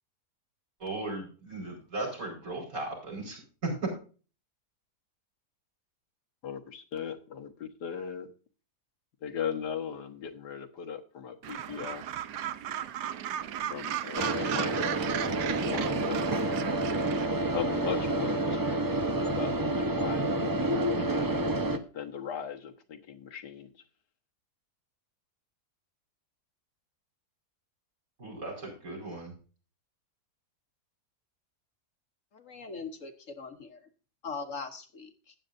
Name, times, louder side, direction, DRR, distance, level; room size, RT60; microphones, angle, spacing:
voice 1, 0.8-3.9 28.2-29.3, right 2 dB, 55° right, -1 dB, 5.3 m, -36 dB
voice 2, 6.4-8.3 9.2-12.0 13.7-14.9 15.6-16.3 17.5-18.9 19.2-21.3 21.9-23.7, left 8 dB, 90° left, 5 dB, 1.9 m, -38 dB
Gull seagull, 11.4-17.3, right 10 dB, 90° right, 1.4 m, -35 dB
sound 1, 14.2-21.8, right 1 dB, 20° right, 0.6 m, -29 dB
voice 3, 32.3-33.8 34.2-35.3, left 4 dB, 55° left, 7 dB, 1.4 m, -41 dB
14.5 x 9.1 x 2.6 m, 0.37 s
omnidirectional pair, 1.7 m